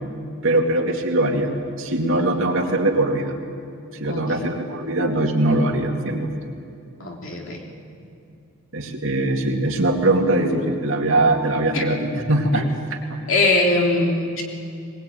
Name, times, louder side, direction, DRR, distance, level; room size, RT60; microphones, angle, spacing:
voice 1, 0.4-1.5 1.8-3.3 4.0-6.3 8.7-12.7 13.1-13.2, right 2 dB, 65° right, 1 dB, 2.5 m, -21 dB
voice 2, 4.1-4.4 7.0-7.6 11.7-11.8 12.5-12.6 13.3-14.4, left 2 dB, 65° left, 0 dB, 3.1 m, -21 dB
20.5 x 20.0 x 9.1 m, 2.5 s
head